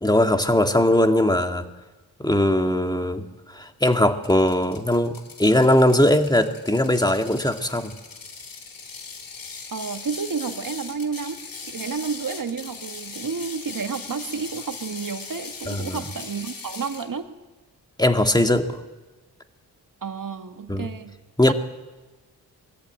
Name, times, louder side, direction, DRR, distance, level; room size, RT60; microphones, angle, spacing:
voice 1, 0.0-1.6 2.2-3.2 3.5-5.1 5.4-7.9 15.7-16.0 18.0-18.7 20.7-20.9 21.4-21.5, left 1 dB, 10° left, 6 dB, 2.1 m, -20 dB
Ratchet pawl, 3.9-17.1, left 5 dB, 55° left, 2.4 m, -39 dB
voice 2, 9.7-17.3 20.0-21.1 21.5-21.6, right 5 dB, 50° right, 7 dB, 1.9 m, -31 dB
21.5 x 13.5 x 9.2 m, 1.2 s
supercardioid pair, 40°, 41 cm